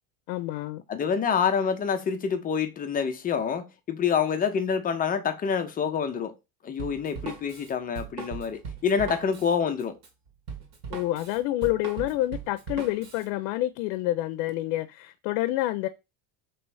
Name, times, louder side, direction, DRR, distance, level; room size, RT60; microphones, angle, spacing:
voice 1, 0.3-0.8 10.9-15.9, left 16 dB, 75° left, 0.6 m, -28 dB
voice 2, 0.9-6.3 6.6-10.0, left 6 dB, 20° left, 0.4 m, -27 dB
Drum kit, 6.8-13.3, right 5 dB, 55° right, 1.5 m, -39 dB
3.1 x 3.0 x 4.6 m
supercardioid pair, 135°, 47 cm